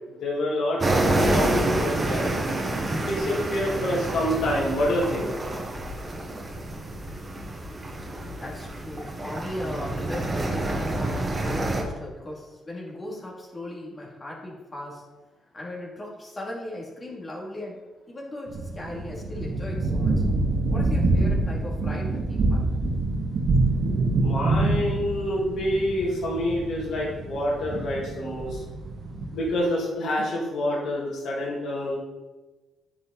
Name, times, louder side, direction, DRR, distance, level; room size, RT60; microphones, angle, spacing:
voice 1, 0.2-2.3 3.0-5.3 24.2-28.6 29.3-32.0, left 1 dB, 70° left, -5 dB, 2.0 m, -27 dB
sound 1, 0.8-11.8, right 1 dB, 30° right, 1.7 m, -28 dB
voice 2, 8.4-15.0 15.5-17.8 18.1-20.2 20.7-22.6, left 1 dB, 25° left, -3 dB, 2.7 m, -37 dB
sound 2, 18.5-29.5, right 2 dB, 55° right, 1.4 m, -26 dB
9.7 x 5.3 x 4.2 m, 1.2 s
cardioid pair, 90°, 0 cm